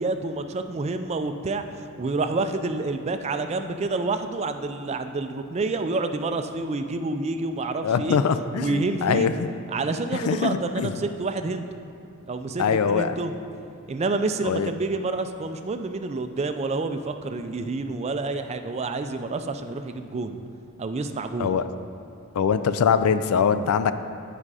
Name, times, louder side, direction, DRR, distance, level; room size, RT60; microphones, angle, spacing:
voice 1, 0.0-1.6 2.0-8.2 8.5-9.3 9.7-11.6 12.3-13.3 13.9-20.4 20.8-21.6, right 3 dB, 30° right, 8 dB, 0.3 m, -28 dB
voice 2, 7.8-9.5 10.1-11.0 12.6-13.1 14.5-14.7 21.4-21.6 22.4-23.9, left 6 dB, 75° left, 11 dB, 0.4 m, -23 dB
9.8 x 5.0 x 4.8 m, 2.7 s
head